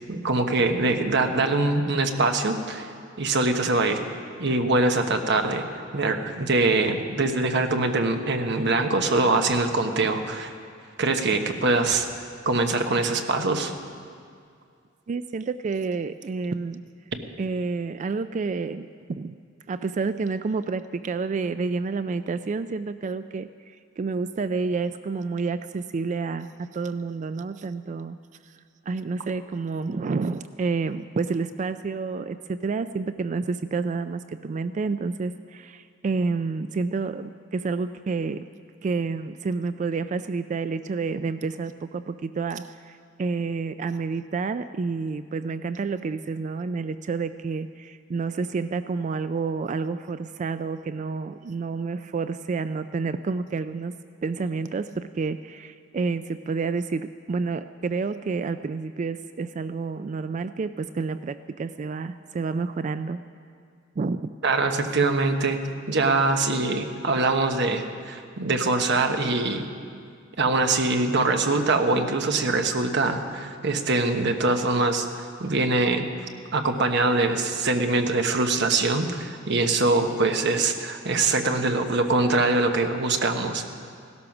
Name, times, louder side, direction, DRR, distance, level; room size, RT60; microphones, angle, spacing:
voice 1, 0.1-2.9 3.2-4.0 4.4-5.6 5.9-10.5 11.0-12.1 12.4-13.7 64.4-65.6 65.9-69.7 70.4-76.0 76.5-83.7, right 3 dB, 60° right, 5 dB, 1.1 m, -23 dB
voice 2, 15.1-16.8 17.4-19.3 19.7-28.2 28.4-28.5 28.9-38.4 38.8-53.9 54.2-63.2 64.0-64.3, right 4 dB, 40° right, 12 dB, 0.3 m, -29 dB
17.0 x 12.5 x 6.0 m, 2.2 s
head